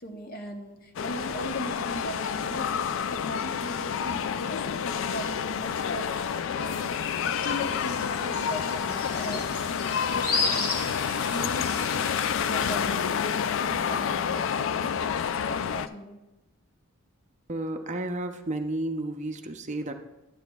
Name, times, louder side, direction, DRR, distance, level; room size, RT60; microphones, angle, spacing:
voice 1, 0.0-2.7 3.1-7.0 7.2-10.8 11.3-16.2, equal, 45° left, 4 dB, 0.8 m, -39 dB
sound 1, 1.0-15.9, left 7 dB, 60° left, 0.3 m, -29 dB
sound 2, 7.3-12.3, left 3 dB, 90° left, 2.1 m, -34 dB
voice 2, 17.5-19.9, right 1 dB, 35° right, 6 dB, 0.5 m, -32 dB
11.5 x 9.2 x 2.3 m, 1.0 s
head